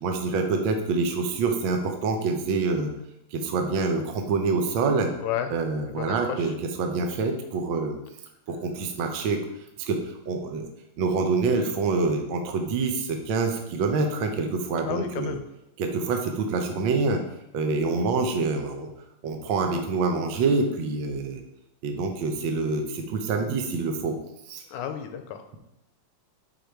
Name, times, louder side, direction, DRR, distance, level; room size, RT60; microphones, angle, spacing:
voice 1, 0.0-2.9 3.3-5.1 5.5-8.0 8.5-9.4 9.8-10.0 10.2-10.7 11.0-15.4 15.8-17.2 17.5-18.9 19.2-21.4 21.8-24.2 24.5-24.6, right 4 dB, 85° right, 4 dB, 1.0 m, -26 dB
voice 2, 5.9-6.5 14.9-15.4 24.7-25.5, left 9 dB, 90° left, 7 dB, 2.1 m, -32 dB
8.1 x 4.2 x 4.6 m, 0.87 s
omnidirectional pair, 3.5 m